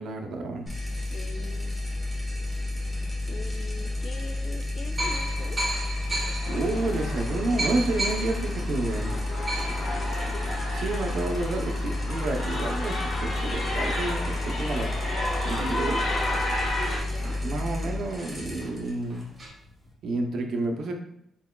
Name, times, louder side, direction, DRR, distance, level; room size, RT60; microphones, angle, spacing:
voice 1, 0.0-0.6 6.5-9.1 10.8-14.9 15.4-16.0 17.2-19.3 20.0-20.9, right 2 dB, 60° right, 3 dB, 0.6 m, -30 dB
sound 1, 0.7-19.9, left 2 dB, 10° left, 1.1 m, -31 dB
voice 2, 0.8-1.8 3.3-5.6 9.8-10.6 17.0-17.4, left 4 dB, 40° left, 8 dB, 0.3 m, -43 dB
sound 2, 3.3-3.4 4.2-4.3 5.0-14.1 14.5-14.6 14.8-19.5, right 1 dB, 20° right, 1.1 m, -37 dB
sound 3, 6.4-17.0, left 1 dB, 55° left, 1.2 m, -32 dB
4.4 x 3.7 x 2.2 m, 0.76 s
cardioid pair, 145°, 0 cm